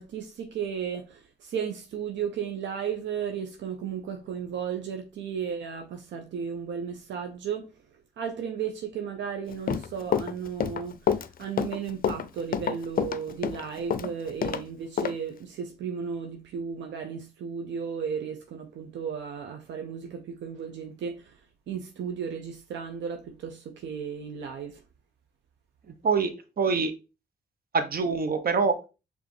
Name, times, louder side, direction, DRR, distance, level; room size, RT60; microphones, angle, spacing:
voice 1, 0.0-7.7 8.2-24.8, right 7 dB, 80° right, 0.7 m, -34 dB
Run, 9.5-14.6 15.0-15.1, left 8 dB, 50° left, 0.5 m, -28 dB
voice 2, 26.0-26.9 27.7-28.9, right 5 dB, 55° right, 0.9 m, -25 dB
5.0 x 3.4 x 3.2 m
supercardioid pair, 50°, 19 cm